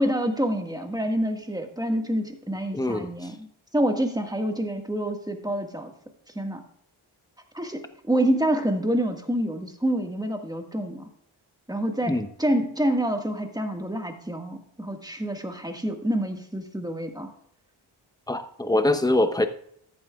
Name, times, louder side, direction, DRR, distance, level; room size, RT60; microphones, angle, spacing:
voice 1, 0.0-3.5 3.7-5.9 6.3-6.6 7.5-11.1 11.7-12.1 12.4-17.3, right 1 dB, 10° right, 5 dB, 1.7 m, -27 dB
voice 2, 2.7-3.1 12.1-12.3 18.3-19.5, left 1 dB, 10° left, 8 dB, 0.9 m, -23 dB
14.0 x 8.9 x 2.4 m, 0.69 s
cardioid pair, 45°, 50 cm